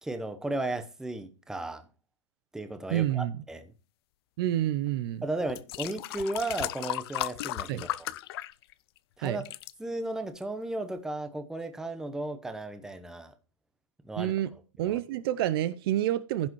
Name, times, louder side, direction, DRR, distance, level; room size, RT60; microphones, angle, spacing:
voice 1, 0.0-1.8 2.5-3.7 5.2-8.1 9.2-9.4 9.8-13.3 14.0-14.3 14.8-15.0, right 2 dB, 5° right, 0.8 m, -35 dB
voice 2, 2.9-3.4 4.4-5.2 7.7-7.8 9.2-9.4 14.2-14.5 14.8-16.5, right 13 dB, 50° right, 0.5 m, -28 dB
sound 1, 4.9-5.0 5.5-9.0 9.3-9.7 10.4-10.5, left 16 dB, 50° left, 0.4 m, -35 dB
15.5 x 5.9 x 3.0 m
hypercardioid pair, 130°, 16 cm